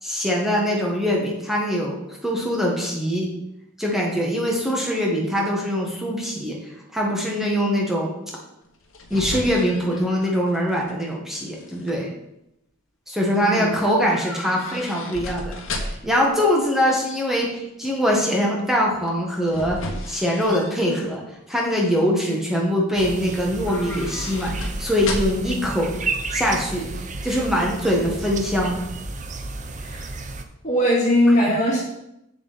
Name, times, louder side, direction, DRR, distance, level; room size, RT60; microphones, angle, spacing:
voice 1, 0.0-1.9 2.2-3.3 3.8-6.6 6.9-8.1 9.1-12.1 13.1-21.2 21.5-25.9 26.3-26.9 27.2-28.8 31.4-31.5, equal, ahead, -2 dB, 1.4 m, -23 dB
sound 1, 8.6-11.0 11.3-11.9 14.1-16.2 19.0-21.1 21.6-22.0 23.5-25.6 25.9-26.0, left 1 dB, 70° left, 1.1 m, -34 dB
voice 2, 13.4-13.7 29.8-30.1 30.6-31.8, left 1 dB, 35° left, -6 dB, 2.4 m, -20 dB
sound 2, 23.0-30.4, right 3 dB, 35° right, 0.5 m, -32 dB
7.3 x 7.2 x 4.2 m, 0.85 s
head